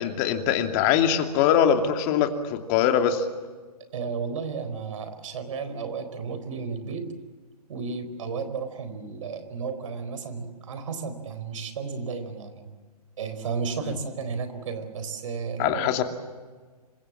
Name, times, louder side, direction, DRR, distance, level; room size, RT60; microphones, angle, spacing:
voice 1, 0.0-3.3 15.6-16.0, left 9 dB, 30° left, 6 dB, 2.7 m, -22 dB
voice 2, 3.9-7.1 7.7-12.7 13.2-15.9, right 5 dB, 55° right, 10 dB, 4.3 m, -33 dB
27.0 x 24.5 x 7.2 m, 1.4 s
figure-of-eight pair, 130°, 20 cm